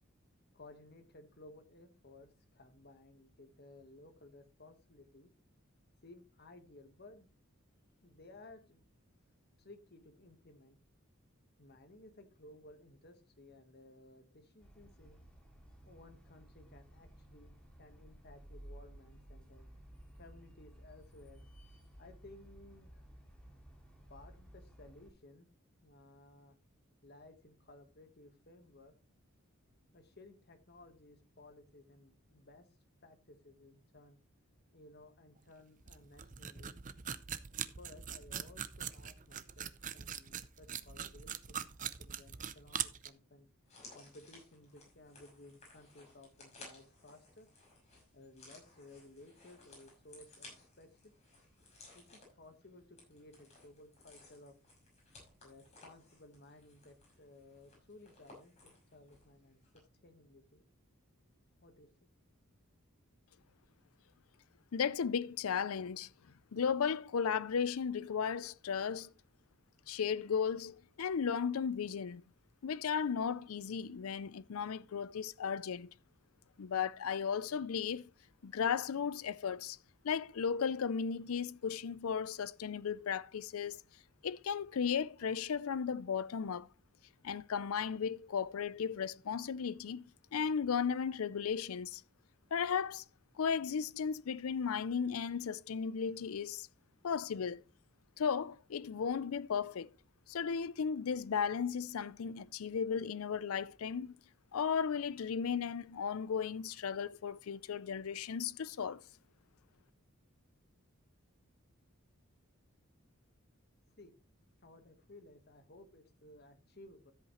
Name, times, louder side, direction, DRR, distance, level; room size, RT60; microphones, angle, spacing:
voice 1, 0.5-5.3 6.0-7.3 8.0-8.9 9.6-10.8 11.6-15.2 15.8-19.7 20.1-21.4 22.0-23.1 24.1-25.5 25.8-26.5 27.0-28.9 29.9-32.7 33.0-34.2 34.7-36.8 37.6-43.5 43.9-47.5 48.1-51.1 51.9-54.6 55.4-60.6 61.6-61.9 114.0-114.2 114.6-117.1, left 2 dB, 50° left, 1.4 m, -58 dB
sound 1, 14.6-25.1, right 1 dB, 5° left, 2.5 m, -56 dB
sound 2, 35.4-35.5 35.8-43.1, right 9 dB, 35° right, 0.6 m, -42 dB
sound 3, 43.6-59.3 59.6-59.8, left 2 dB, 30° left, 5.9 m, -59 dB
voice 2, 64.7-66.1 66.5-69.1 69.9-72.2 72.6-75.9 76.6-78.0 78.4-79.8 80.0-83.8 84.2-86.7 87.2-90.0 90.3-92.0 92.5-93.0 93.4-96.7 97.0-97.6 98.2-99.9 100.3-104.1 104.5-109.0, left 6 dB, 80° left, 0.5 m, -35 dB
13.5 x 8.2 x 3.1 m
head